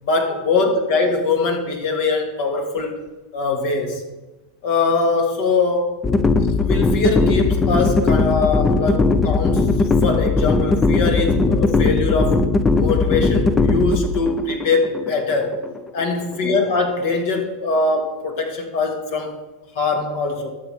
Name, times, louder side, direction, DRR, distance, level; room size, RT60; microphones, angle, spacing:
voice 1, 0.0-3.0 3.3-4.0 4.6-5.9 6.6-9.7 10.0-12.4 12.8-15.6 15.9-19.3 19.8-20.5, left 3 dB, 65° left, 2 dB, 2.4 m, -22 dB
sound 1, 6.0-16.1, left 3 dB, 20° left, 0.7 m, -18 dB
13.0 x 6.2 x 5.1 m, 1.1 s
hypercardioid pair, 100°, 0 cm